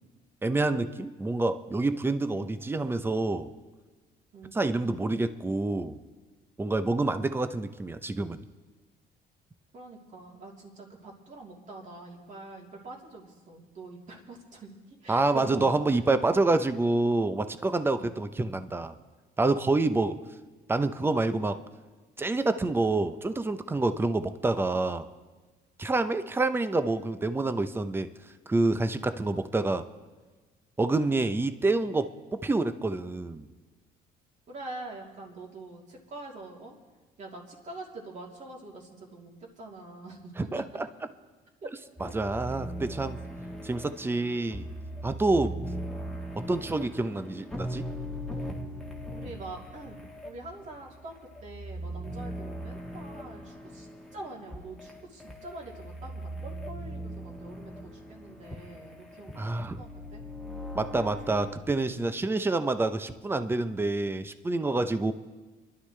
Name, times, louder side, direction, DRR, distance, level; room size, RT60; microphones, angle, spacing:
voice 1, 0.4-3.5 4.5-6.0 6.6-8.4 15.1-18.9 19.4-20.2 20.7-21.6 22.2-25.1 25.8-28.1 28.5-29.9 30.8-32.1 32.4-33.5 40.4-40.9 42.0-43.2 43.6-44.6 45.0-45.6 46.3-47.9 59.4-59.8 60.7-65.1, right 2 dB, 15° right, 11 dB, 0.7 m, -27 dB
voice 2, 4.3-4.8 9.7-15.7 18.0-18.2 34.5-36.7 37.2-40.6 41.6-41.7 42.0-42.1 45.8-45.9 49.1-50.0 50.2-51.1 51.4-60.2, right 2 dB, 45° right, -2 dB, 3.1 m, -44 dB
sound 1, 42.0-61.6, equal, 5° left, 1.6 m, -40 dB
27.5 x 11.5 x 3.3 m, 1.3 s
cardioid pair, 110°, 17 cm